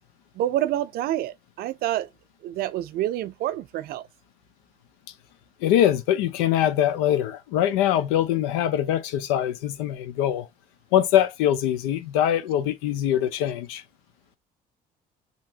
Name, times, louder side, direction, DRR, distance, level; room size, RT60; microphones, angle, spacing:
voice 1, 0.3-2.1 2.4-4.1, right 13 dB, 65° right, 0.4 m, -27 dB
voice 2, 5.6-10.5 10.9-13.8, left 11 dB, 85° left, 0.6 m, -23 dB
2.9 x 2.6 x 2.7 m
supercardioid pair, 75°, 17 cm